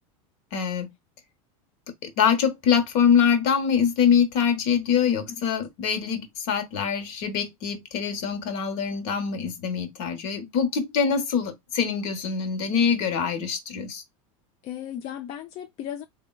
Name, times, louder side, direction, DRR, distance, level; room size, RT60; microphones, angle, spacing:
voice 1, 0.5-0.9 2.0-14.0, left 7 dB, 60° left, 1.0 m, -24 dB
voice 2, 4.9-5.2 14.6-16.0, left 10 dB, 35° left, 0.4 m, -36 dB
3.5 x 2.2 x 2.2 m
supercardioid pair, 125°, 18 cm